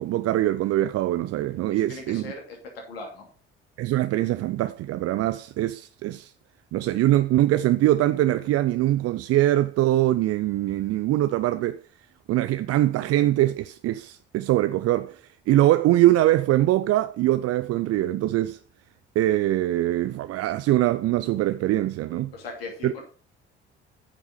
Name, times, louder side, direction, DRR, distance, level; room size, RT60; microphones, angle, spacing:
voice 1, 0.0-2.3 3.8-6.3 6.7-11.8 12.3-15.2 15.5-18.6 19.2-22.3 22.8-22.9, right 14 dB, 55° right, 0.5 m, -23 dB
voice 2, 1.7-2.6 2.9-3.3 22.3-23.0, left 3 dB, 85° left, 2.7 m, -39 dB
9.2 x 6.0 x 5.0 m
hypercardioid pair, 50°, 29 cm